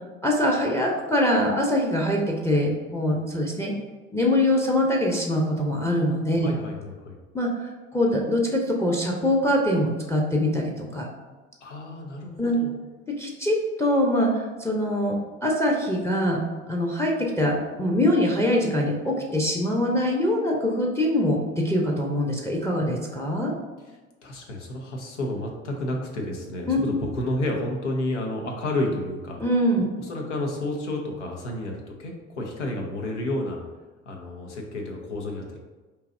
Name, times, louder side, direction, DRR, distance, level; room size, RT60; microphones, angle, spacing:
voice 1, 0.2-3.7 4.1-6.5 7.3-7.5 7.9-11.1 12.4-12.6 13.1-16.4 16.7-23.5 26.7-27.0 29.4-29.9, left 1 dB, 10° left, -1 dB, 0.6 m, -23 dB
voice 2, 6.4-7.2 11.6-12.7 24.2-29.4 30.0-33.6 34.1-35.6, left 1 dB, 80° left, 1 dB, 0.7 m, -30 dB
4.6 x 2.8 x 2.5 m, 1.2 s
figure-of-eight pair, 60°, 35 cm